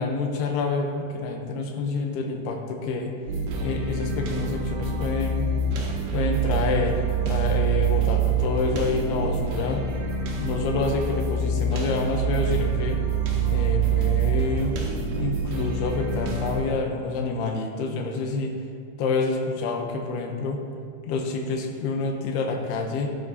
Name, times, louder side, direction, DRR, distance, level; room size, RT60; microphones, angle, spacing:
voice 1, 0.0-3.1 3.6-5.5 6.1-7.0 7.3-9.8 10.4-13.0 13.5-14.7 15.2-18.5 19.0-20.6 21.1-23.2, left 3 dB, 80° left, 3 dB, 2.5 m, -27 dB
sound 1, 3.3-16.6, right 5 dB, 70° right, 2.9 m, -26 dB
12.5 x 8.1 x 2.7 m, 2.2 s
omnidirectional pair, 5.3 m